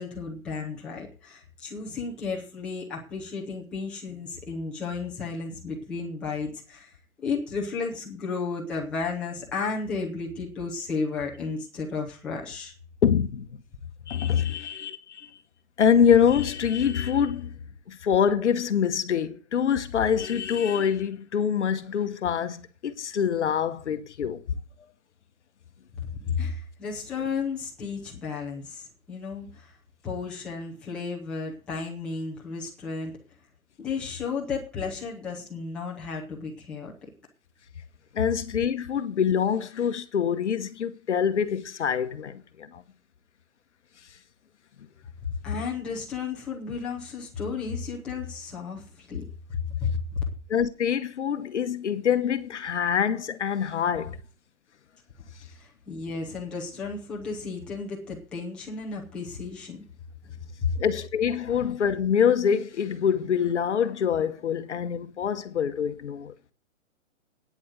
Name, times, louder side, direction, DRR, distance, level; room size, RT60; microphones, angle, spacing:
voice 1, 0.0-6.9 7.2-12.7 26.0-29.8 30.0-33.1 33.8-36.9 45.3-49.2 49.8-50.2 55.5-59.8 60.6-60.7, left 5 dB, ahead, 0.7 m, -33 dB
voice 2, 13.0-13.6 14.1-15.3 15.8-17.5 17.9-24.4 38.1-42.8 50.5-54.2 60.8-66.3, left 8 dB, 55° left, 1.0 m, -25 dB
9.4 x 8.3 x 7.8 m
hypercardioid pair, 170°, 42 cm